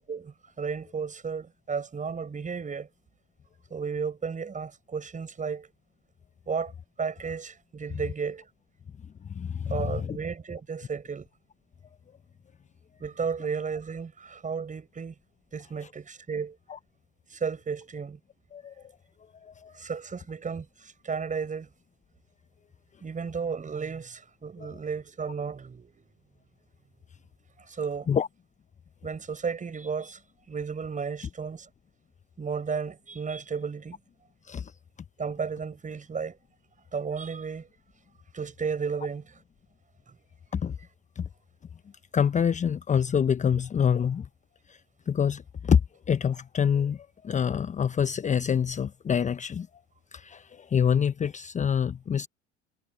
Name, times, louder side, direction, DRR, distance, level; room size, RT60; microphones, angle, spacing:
voice 1, 0.0-2.9 3.7-5.7 6.5-6.7 7.0-8.5 9.7-11.3 13.0-15.2 15.5-16.6 17.3-18.2 19.7-21.7 23.0-26.1 27.7-28.1 29.0-30.2 30.5-31.7 32.4-34.0 35.2-36.4 36.9-37.7 38.3-39.4 40.1-40.2, right 5 dB, 20° right, 7.3 m, -33 dB
voice 2, 9.2-10.2 16.7-16.8 18.5-18.7 19.4-19.7 24.6-24.7 28.1-28.3 34.4-34.7 40.5-40.8 41.1-41.3 42.1-44.3 44.7-44.8 45.1-49.7 50.1-52.3, left 7 dB, 20° left, 1.1 m, -26 dB
figure-of-eight pair, 75°, 36 cm